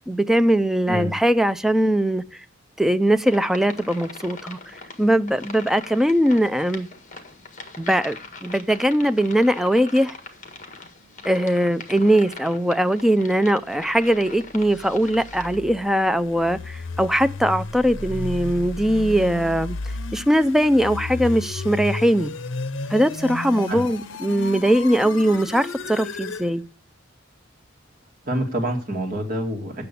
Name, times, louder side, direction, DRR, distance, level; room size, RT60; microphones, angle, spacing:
voice 1, 0.1-2.4 2.8-4.6 5.0-6.9 7.8-10.1 11.3-19.8 20.1-22.3 22.9-26.6, equal, ahead, 0.4 m, -20 dB
sound 1, 3.2-15.6, left 3 dB, 40° left, 1.6 m, -41 dB
sound 2, 14.3-26.5, left 3 dB, 75° left, 0.8 m, -33 dB
voice 2, 28.2-29.8, equal, 45° right, 2.5 m, -26 dB
8.5 x 6.7 x 8.4 m
head